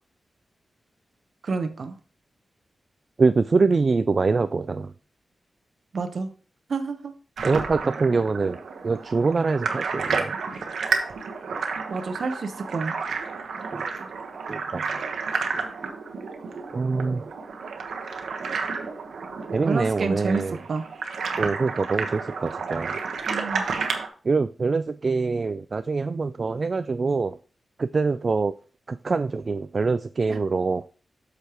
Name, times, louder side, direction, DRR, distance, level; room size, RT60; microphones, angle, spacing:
voice 1, 1.4-1.9 5.9-6.3 6.7-7.1 11.9-13.0 19.7-20.8 23.3-23.6 30.3-30.4, right 4 dB, 60° right, 9 dB, 0.9 m, -28 dB
voice 2, 3.2-4.9 7.4-8.6 8.8-10.3 13.7-13.8 14.5-14.9 16.7-17.3 19.5-20.6 21.4-23.0 24.2-27.4 27.8-28.5 28.9-30.8, right 4 dB, 45° right, 11 dB, 0.3 m, -24 dB
sound 1, 7.4-24.1, right 5 dB, 85° right, 1.1 m, -31 dB
8.2 x 6.5 x 3.0 m, 0.38 s
wide cardioid pair, 95°, 0 cm